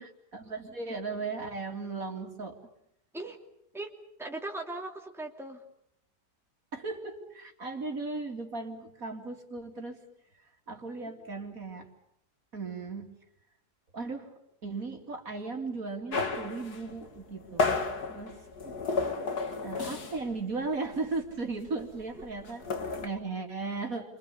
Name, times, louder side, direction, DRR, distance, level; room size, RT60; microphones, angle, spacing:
voice 1, 0.0-2.6 6.7-10.0 10.7-11.9 12.5-13.1 13.9-14.3 14.6-17.8 18.1-18.5 19.6-24.2, right 3 dB, 55° right, 3 dB, 3.2 m, -36 dB
voice 2, 4.2-5.6 18.6-19.2, right 2 dB, ahead, 1 dB, 2.8 m, -39 dB
sound 1, 16.1-20.4 20.6-20.9 21.1-23.1, left 4 dB, 65° left, 2.6 m, -32 dB
29.5 x 25.5 x 7.0 m, 0.73 s
omnidirectional pair, 1.8 m